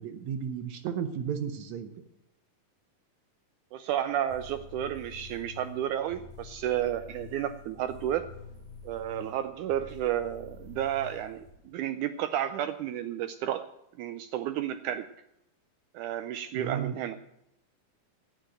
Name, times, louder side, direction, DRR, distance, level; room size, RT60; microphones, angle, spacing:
voice 1, 0.0-1.9 16.5-17.0, right 8 dB, 70° right, 9 dB, 1.8 m, -33 dB
voice 2, 3.7-8.2 8.8-13.7 14.0-15.1 15.9-17.2, right 11 dB, 85° right, 11 dB, 1.7 m, -32 dB
sound 1, 4.3-11.5, left 3 dB, 20° right, 5.5 m, -48 dB
11.5 x 9.0 x 8.8 m, 0.84 s
omnidirectional pair, 4.2 m